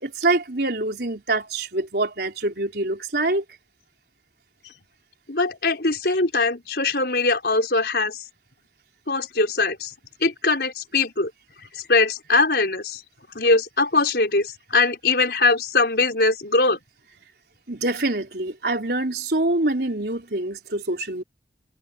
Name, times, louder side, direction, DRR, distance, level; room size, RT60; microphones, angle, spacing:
voice 1, 0.0-3.4 17.7-21.2, right 2 dB, 65° right, 3.7 m, -25 dB
voice 2, 5.3-8.2 9.1-9.9 10.2-11.3 11.7-13.0 13.3-16.8, left 3 dB, 70° left, 4.4 m, -21 dB
head